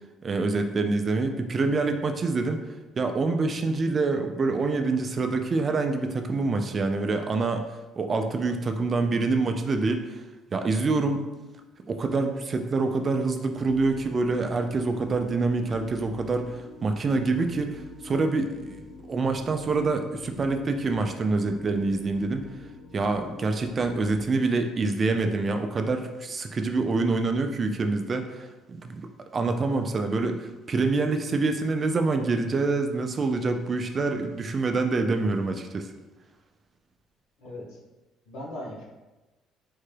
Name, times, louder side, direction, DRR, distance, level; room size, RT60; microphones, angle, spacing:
voice 1, 0.2-7.7 8.0-10.2 10.5-11.2 11.9-22.5 22.9-35.9, right 3 dB, 35° right, 6 dB, 0.3 m, -26 dB
sound 1, 13.5-24.2, left 3 dB, 50° left, 0.5 m, -45 dB
voice 2, 37.4-37.8 38.3-38.9, left 1 dB, 80° left, -4 dB, 0.9 m, -38 dB
3.7 x 2.2 x 3.2 m, 1.1 s
cardioid pair, 115°, 0 cm